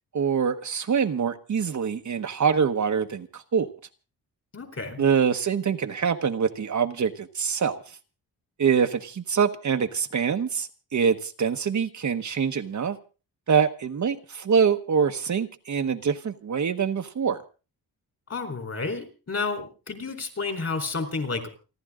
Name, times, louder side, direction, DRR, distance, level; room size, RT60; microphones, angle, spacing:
voice 1, 0.1-3.7 5.0-7.8 8.6-13.0 13.5-17.4, right 6 dB, 50° right, 1.1 m, -25 dB
voice 2, 4.5-5.0 18.3-21.6, left 4 dB, 40° left, 4.0 m, -31 dB
29.0 x 11.5 x 3.7 m
wide cardioid pair, 155°, 38 cm